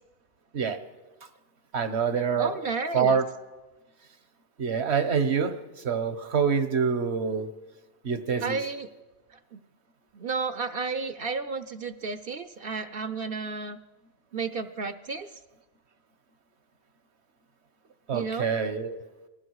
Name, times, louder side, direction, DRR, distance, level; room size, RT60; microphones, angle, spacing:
voice 1, 1.7-2.5 2.9-3.2 4.6-5.6 5.8-7.5 8.0-8.6 18.1-18.9, right 6 dB, 75° right, 10 dB, 1.5 m, -26 dB
voice 2, 2.4-3.2 8.4-8.9 9.5-9.6 10.1-13.8 14.3-15.3 18.1-18.5, right 4 dB, 60° right, 11 dB, 0.9 m, -32 dB
28.0 x 20.0 x 4.8 m, 1.2 s
omnidirectional pair, 1.1 m